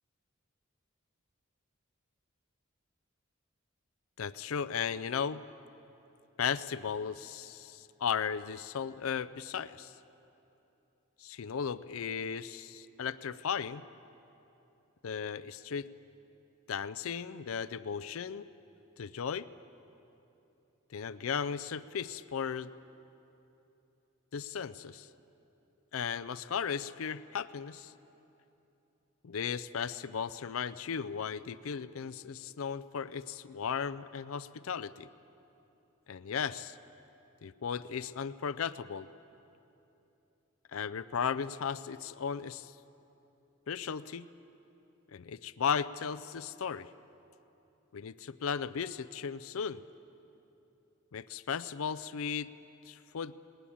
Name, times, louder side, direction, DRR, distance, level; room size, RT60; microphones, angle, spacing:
voice 1, 4.2-5.4 6.4-9.9 11.2-13.9 15.0-15.9 16.7-18.4 19.0-19.5 20.9-22.7 24.3-25.1 25.9-27.9 29.2-35.1 36.1-36.8 37.4-39.1 40.7-42.7 43.7-44.3 45.1-46.9 47.9-49.8 51.1-52.5 52.9-53.3, left 7 dB, 85° left, 15 dB, 0.5 m, -36 dB
20.0 x 19.0 x 8.5 m, 3.0 s
head